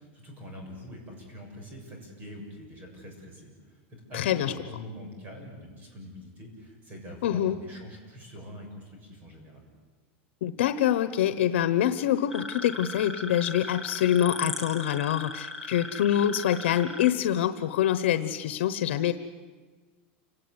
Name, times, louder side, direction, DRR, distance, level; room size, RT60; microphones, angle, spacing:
voice 1, 0.0-9.6, left 1 dB, 25° right, 2 dB, 7.1 m, -44 dB
voice 2, 4.1-4.5 7.2-7.6 10.4-19.1, left 11 dB, 85° left, 11 dB, 1.1 m, -25 dB
sound 1, 12.3-17.1, left 2 dB, 5° right, 2.0 m, -38 dB
29.0 x 18.0 x 9.7 m, 1.4 s
supercardioid pair, 160°, 6 cm